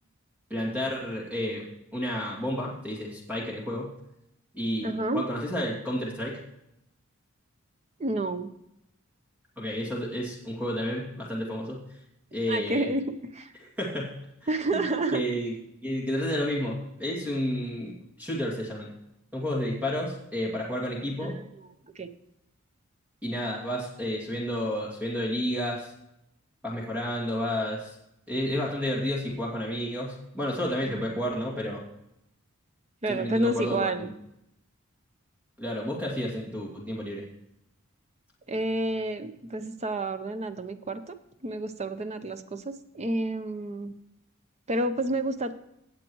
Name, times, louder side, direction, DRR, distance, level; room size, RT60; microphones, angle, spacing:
voice 1, 0.5-1.6 1.9-3.9 4.5-6.4 9.6-11.8 12.3-12.9 13.8-14.1 14.4-14.8 15.1-15.5 15.8-18.9 19.3-21.4 23.2-25.9 26.6-28.0 28.3-31.8 33.1-34.1 35.6-37.3, equal, 10° right, -3 dB, 2.4 m, -31 dB
voice 2, 4.8-5.2 8.0-8.5 12.5-13.0 13.3-13.5 14.5-15.2 21.2-22.1 30.8-31.1 33.0-34.1 38.5-41.2 41.4-43.9 44.7-45.5, right 2 dB, 30° right, 9 dB, 0.7 m, -30 dB
17.5 x 7.5 x 3.1 m, 0.81 s
head